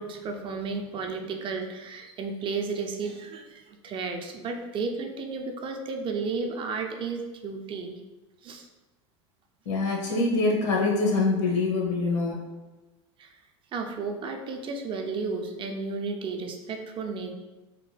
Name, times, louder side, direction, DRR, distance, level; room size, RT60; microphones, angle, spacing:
voice 1, 0.0-7.9 8.4-8.7 13.2-13.3 13.7-17.3, right 4 dB, 35° right, 4 dB, 0.5 m, -33 dB
voice 2, 9.7-12.4, left 3 dB, 80° left, -2 dB, 0.9 m, -24 dB
2.9 x 2.2 x 3.2 m, 1.1 s
hypercardioid pair, 100°, 15 cm